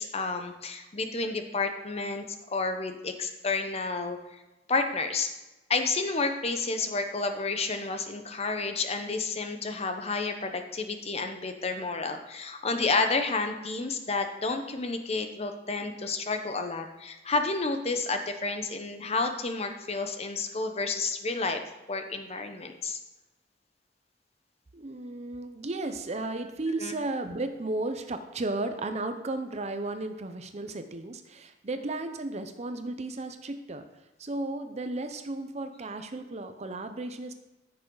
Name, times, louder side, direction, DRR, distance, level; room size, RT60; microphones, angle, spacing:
voice 1, 0.0-4.4 4.7-5.3 5.7-21.6 21.9-23.0 26.8-26.9, left 3 dB, 35° left, 6 dB, 0.9 m, -30 dB
voice 2, 24.7-33.9 34.2-37.3, right 2 dB, 40° right, 8 dB, 0.6 m, -34 dB
14.0 x 6.4 x 3.9 m, 1.1 s
head